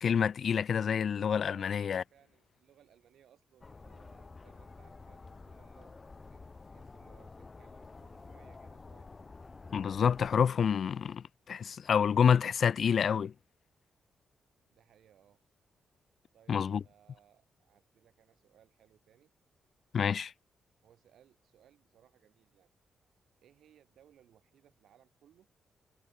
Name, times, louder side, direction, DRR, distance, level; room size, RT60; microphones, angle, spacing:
voice 1, 0.0-2.0 9.7-13.3 16.5-16.8 19.9-20.3, left 7 dB, 55° left, 0.7 m, -28 dB
voice 2, 1.5-6.4 6.7-9.1 14.7-15.4 16.3-19.3 20.8-22.7 23.4-25.5, right 10 dB, 80° right, 7.7 m, -65 dB
sound 1, 3.6-10.5, left 3 dB, 30° left, 2.8 m, -50 dB
cardioid pair, 105°, 0 cm